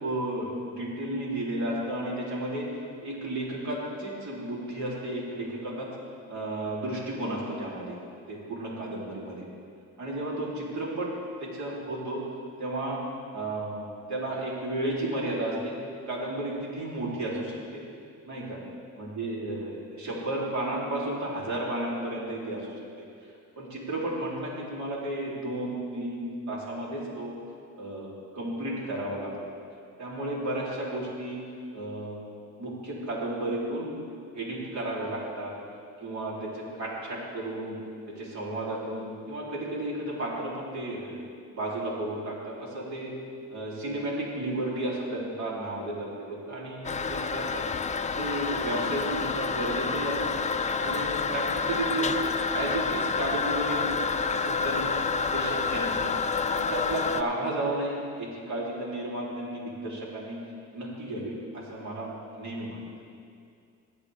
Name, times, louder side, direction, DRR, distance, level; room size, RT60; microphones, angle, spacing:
voice 1, 0.0-2.7 3.0-5.9 6.3-8.0 8.3-9.5 10.0-11.1 11.4-12.2 12.6-13.0 13.3-15.8 16.1-17.8 18.3-18.6 19.0-22.8 23.6-27.3 27.8-28.1 28.3-29.3 30.0-31.4 31.7-32.2 32.6-33.9 34.3-35.5 36.0-37.7 38.1-41.2 41.5-43.1 43.5-47.6 48.2-50.4 50.8-52.1 52.5-53.9 54.3-55.0 55.3-56.1 56.5-60.4 60.7-62.1 62.4-62.8, right 1 dB, 65° right, -5 dB, 3.5 m, -33 dB
Toilet flush, 46.8-57.2, left 5 dB, 25° left, 0.5 m, -28 dB
19.5 x 8.1 x 3.5 m, 2.4 s
cardioid pair, 90°, 30 cm